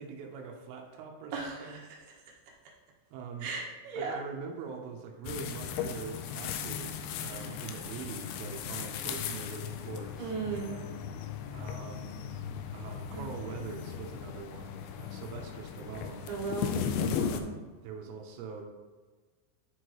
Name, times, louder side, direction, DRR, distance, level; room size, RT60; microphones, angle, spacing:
voice 1, 0.0-1.8 3.1-3.5 4.0-12.2 12.7-16.2 17.1-18.6, right 5 dB, 90° right, 2 dB, 3.4 m, -43 dB
voice 2, 1.3-2.4 3.4-4.2 7.3-7.5 10.2-10.8 13.1-13.5 16.3-17.5, right 4 dB, 70° right, -4 dB, 3.2 m, -37 dB
sound 1, 5.2-17.4, left 8 dB, 85° left, 2.6 m, -37 dB
11.0 x 4.6 x 3.0 m, 1.4 s
omnidirectional pair, 5.6 m